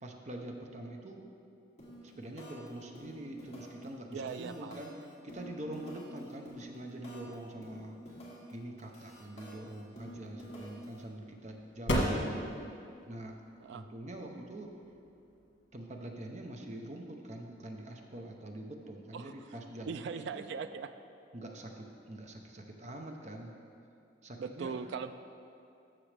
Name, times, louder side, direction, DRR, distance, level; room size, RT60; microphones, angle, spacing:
voice 1, 0.0-1.2 2.0-8.0 8.5-12.6 13.1-13.4 13.7-14.7 15.7-20.5 21.3-23.5 24.2-24.8, right 1 dB, 40° right, 2 dB, 0.7 m, -45 dB
sound 1, 1.8-2.1 2.4-2.7 3.0-3.8 4.1-7.3 7.6-8.5 8.8-11.0, equal, 35° left, 2.0 m, -49 dB
voice 2, 4.1-4.8 13.6-13.8 19.1-19.3 19.8-20.9 24.4-25.1, right 5 dB, 70° right, 10 dB, 0.3 m, -39 dB
sound 2, 9.7-16.5, equal, 85° left, 1.4 m, -38 dB
13.0 x 6.2 x 3.4 m, 2.6 s
head